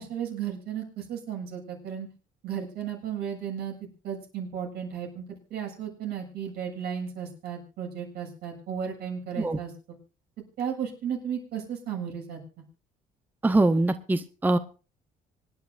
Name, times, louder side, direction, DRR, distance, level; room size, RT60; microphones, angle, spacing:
voice 1, 0.0-2.1 2.4-3.7 4.0-10.0 10.6-12.6, right 8 dB, 75° right, 1 dB, 7.2 m, -34 dB
voice 2, 13.4-14.6, right 2 dB, 10° right, 10 dB, 0.7 m, -23 dB
25.5 x 10.5 x 2.5 m, 0.34 s
cardioid pair, 110°, 17 cm